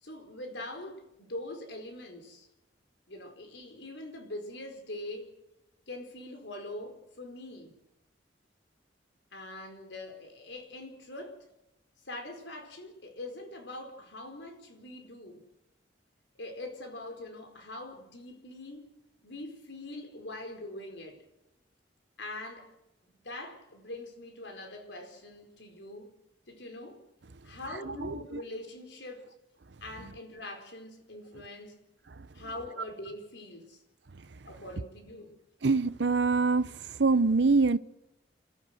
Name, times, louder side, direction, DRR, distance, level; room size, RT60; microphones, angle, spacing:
voice 1, 0.0-2.5 3.1-5.3 5.9-7.8 9.3-11.5 12.0-15.4 16.3-18.9 19.2-21.2 22.2-22.7 23.0-26.1 26.5-27.0 27.4-29.3 29.8-31.8 32.3-33.8 34.5-35.4, left 1 dB, 75° left, 4.7 m, -43 dB
voice 2, 35.6-36.7 37.0-37.8, right 4 dB, 70° right, 0.8 m, -24 dB
29.0 x 14.0 x 7.8 m
head